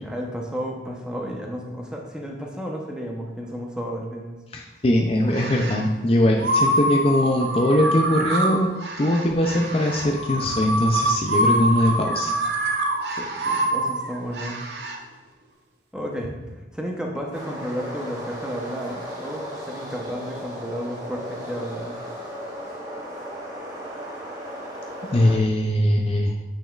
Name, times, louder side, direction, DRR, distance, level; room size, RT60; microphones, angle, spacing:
voice 1, 0.0-4.4 13.1-14.6 15.9-22.0, equal, 5° right, -1 dB, 0.7 m, -32 dB
voice 2, 4.5-8.7 9.0-12.3 25.1-26.3, left 1 dB, 30° left, 1 dB, 0.4 m, -21 dB
sound 1, 5.3-5.9 6.4-15.0, right 1 dB, 70° right, 0.7 m, -25 dB
sound 2, 17.3-25.4, equal, 20° right, 1.2 m, -36 dB
8.4 x 6.1 x 2.4 m, 1.1 s
head